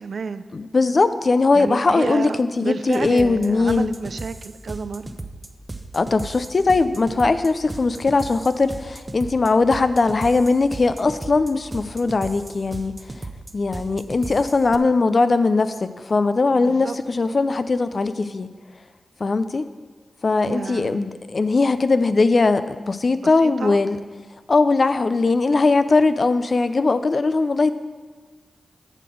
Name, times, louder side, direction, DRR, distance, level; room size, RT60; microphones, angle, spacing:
voice 1, 0.0-0.4 1.5-5.1 16.6-17.0 20.4-21.1 23.2-23.8, right 5 dB, 70° right, 12 dB, 0.4 m, -30 dB
voice 2, 0.5-3.9 5.9-13.0 13.5-18.5 19.2-19.7 20.2-24.0 24.5-27.7, left 3 dB, 50° left, 11 dB, 0.5 m, -20 dB
sound 1, 2.9-14.8, right 2 dB, 30° right, 0.8 m, -36 dB
9.0 x 5.9 x 6.3 m, 1.4 s
cardioid pair, 50°, 0 cm